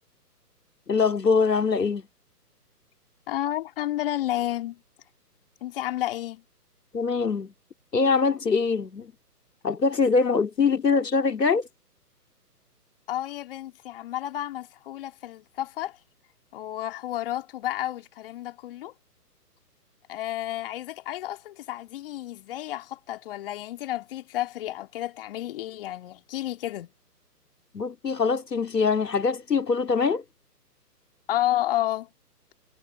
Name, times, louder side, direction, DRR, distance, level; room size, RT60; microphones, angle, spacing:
voice 1, 0.9-2.0 6.9-7.5 7.9-9.1 9.6-11.7 27.7-30.2, left 5 dB, 80° left, 2.5 m, -23 dB
voice 2, 3.3-4.8 5.6-6.4 13.1-16.0 16.5-18.9 20.1-26.9 31.3-32.1, left 14 dB, 35° left, 2.4 m, -31 dB
figure-of-eight pair, 145°, 48 cm